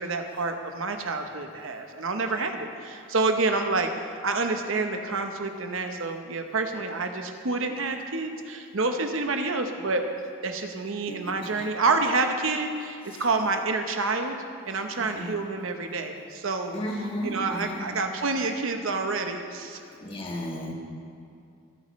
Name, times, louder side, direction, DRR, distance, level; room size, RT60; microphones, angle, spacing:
voice 1, 0.0-3.9 4.2-10.0 10.4-14.4 14.6-16.7 17.2-19.8, right 3 dB, 65° right, 5 dB, 1.0 m, -28 dB
voice 2, 11.1-11.7 13.0-13.3 15.0-15.4 16.7-18.0 20.0-20.7, equal, 25° left, -1 dB, 1.6 m, -34 dB
28.0 x 9.3 x 3.2 m, 2.5 s
head